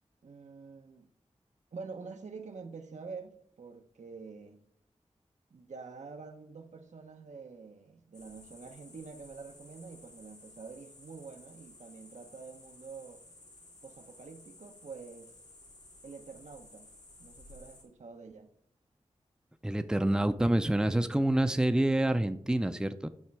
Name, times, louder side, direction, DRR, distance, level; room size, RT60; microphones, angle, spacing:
voice 1, 0.2-1.1 1.7-4.6 5.5-13.2 13.8-15.3 16.0-16.9 17.2-18.5, right 4 dB, 85° right, 1.0 m, -47 dB
sound 1, 8.1-17.8, left 2 dB, 85° left, 2.6 m, -55 dB
voice 2, 19.6-23.1, right 1 dB, 5° right, 0.5 m, -27 dB
12.0 x 4.3 x 4.7 m
wide cardioid pair, 100°, 12 cm